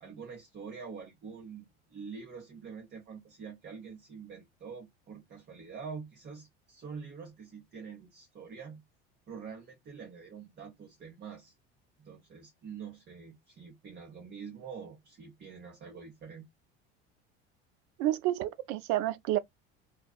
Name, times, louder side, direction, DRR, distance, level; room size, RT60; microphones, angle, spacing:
voice 1, 0.0-8.8 9.3-11.5 12.0-16.5, right 6 dB, 35° right, 1.0 m, -46 dB
voice 2, 18.0-19.4, right 14 dB, 65° right, 0.5 m, -29 dB
2.4 x 2.3 x 2.3 m
supercardioid pair, 85°, 31 cm